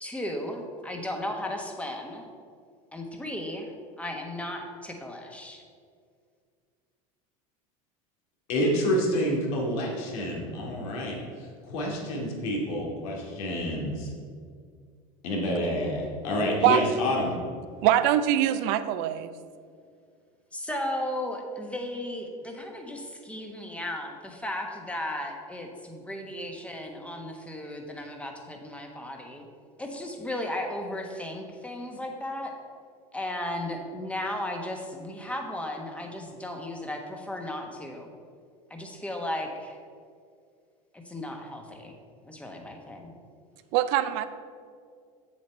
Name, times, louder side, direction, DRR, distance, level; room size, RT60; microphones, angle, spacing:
voice 1, 0.0-2.3 2.9-5.6 20.5-29.4 29.8-32.5 33.1-38.1 38.7-39.8 40.9-42.0 42.2-43.1, left 1 dB, 5° left, 1.3 m, -35 dB
voice 2, 8.5-14.1 15.2-17.3, equal, 75° left, 2.2 m, -28 dB
voice 3, 17.8-19.3 43.7-44.3, right 12 dB, 65° right, 0.6 m, -23 dB
7.8 x 7.3 x 4.4 m
supercardioid pair, 110°, 18 cm